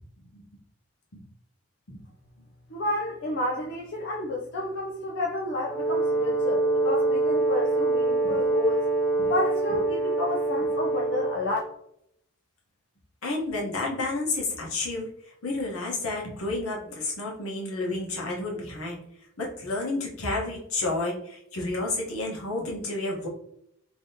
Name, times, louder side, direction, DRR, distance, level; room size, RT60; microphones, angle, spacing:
voice 1, 2.7-8.9 9.3-11.6, left 2 dB, 50° left, -2 dB, 0.5 m, -30 dB
Brass instrument, 5.6-11.6, right 2 dB, 10° left, 0.6 m, -25 dB
voice 2, 13.2-15.1 15.4-19.0 19.4-23.3, left 2 dB, 75° left, -2 dB, 1.1 m, -30 dB
3.5 x 2.9 x 2.8 m, 0.72 s
head